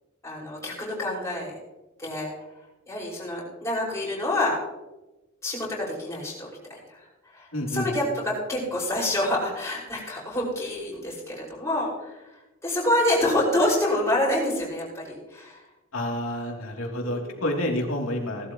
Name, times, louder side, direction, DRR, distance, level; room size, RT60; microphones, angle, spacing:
voice 1, 0.2-1.6 2.0-2.3 2.9-4.6 5.4-15.6 17.0-17.4 18.2-18.5, left 1 dB, 15° left, -5 dB, 5.6 m, -27 dB
voice 2, 7.5-7.9 15.9-18.5, left 1 dB, 85° left, 0 dB, 3.0 m, -29 dB
18.5 x 12.5 x 3.1 m, 1.0 s
head